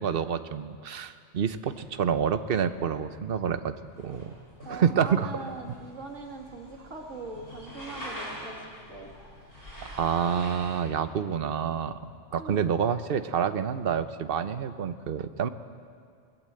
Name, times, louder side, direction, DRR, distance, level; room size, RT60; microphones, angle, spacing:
voice 1, 0.0-4.3 4.7-5.3 9.8-15.5, right 7 dB, 55° right, 10 dB, 1.1 m, -28 dB
sound 1, 1.7-10.8, equal, 50° left, 7.8 m, -45 dB
voice 2, 4.6-9.1 12.3-12.6, right 3 dB, 80° right, 1 dB, 2.8 m, -41 dB
24.0 x 18.5 x 7.8 m, 2.3 s
omnidirectional pair, 1.2 m